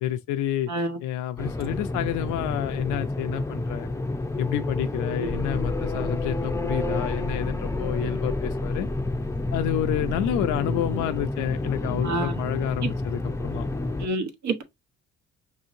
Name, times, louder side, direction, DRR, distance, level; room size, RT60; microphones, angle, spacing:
voice 1, 0.0-0.7 1.0-3.9 4.4-8.9 9.5-13.6, left 11 dB, 85° left, 0.5 m, -29 dB
voice 2, 0.7-1.0 5.2-5.4 12.0-12.4 12.8-12.9 14.0-14.6, right 2 dB, 65° right, 1.0 m, -28 dB
sound 1, 1.4-14.1, left 2 dB, 10° left, 0.5 m, -29 dB
Motor vehicle (road), 5.3-10.6, left 1 dB, 5° right, 0.9 m, -36 dB
5.4 x 2.8 x 2.6 m
cardioid pair, 90°, 30 cm